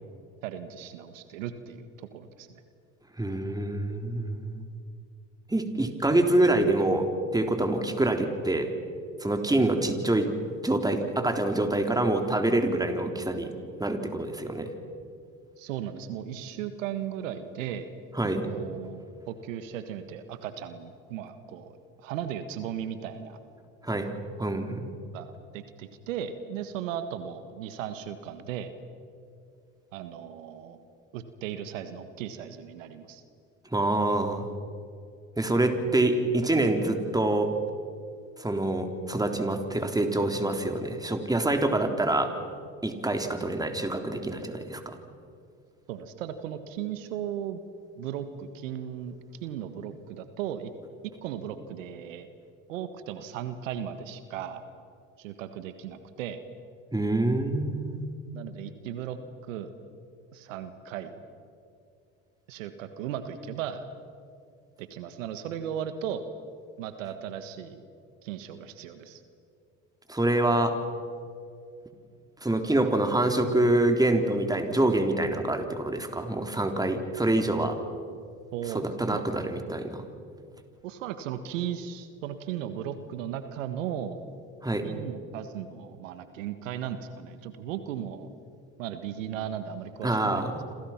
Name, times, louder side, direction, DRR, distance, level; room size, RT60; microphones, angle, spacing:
voice 1, 0.4-2.6 15.6-17.9 18.4-23.4 25.1-28.7 29.9-30.8 31.1-33.2 45.9-47.6 48.0-49.1 49.4-50.7 51.0-52.3 52.7-54.6 55.2-56.4 58.3-59.2 59.4-59.7 60.3-61.1 62.5-63.8 64.8-66.2 66.8-67.8 68.2-69.2 78.5-79.2 80.8-84.2 84.8-88.3 88.8-90.5, right 9 dB, 85° right, 10 dB, 1.6 m, -36 dB
voice 2, 3.2-4.7 5.5-8.7 9.2-10.3 10.6-13.5 13.8-14.7 18.1-18.5 23.8-24.1 24.4-24.9 33.7-34.5 35.4-37.5 38.4-42.3 42.8-45.0 56.9-58.2 70.1-70.8 72.4-77.8 78.7-80.0 84.6-84.9 90.0-90.7, right 1 dB, 10° right, 5 dB, 3.7 m, -26 dB
28.5 x 27.0 x 6.0 m, 2.4 s
hypercardioid pair, 70°, 38 cm